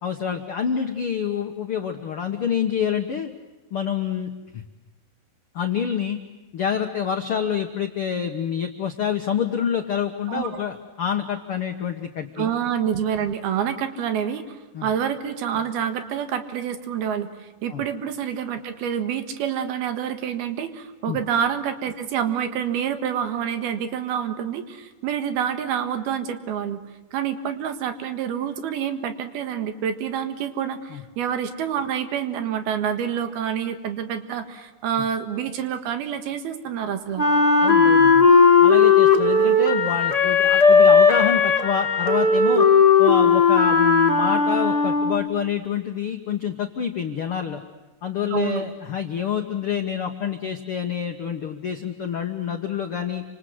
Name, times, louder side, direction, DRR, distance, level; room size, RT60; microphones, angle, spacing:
voice 1, 0.0-3.3 3.7-4.6 5.5-6.2 6.5-12.5 14.7-14.9 17.7-17.8 21.1-21.2 30.9-31.0 37.6-38.3 38.6-42.7 43.0-47.6 48.0-53.2, left 7 dB, 85° left, 5 dB, 1.2 m, -27 dB
voice 2, 12.4-26.8 27.1-37.2 48.3-48.6, right 8 dB, 70° right, 9 dB, 3.4 m, -27 dB
Wind instrument woodwind instrument, 37.2-45.3, left 5 dB, 45° left, 0.4 m, -16 dB
28.5 x 26.0 x 7.9 m, 1.1 s
omnidirectional pair, 4.8 m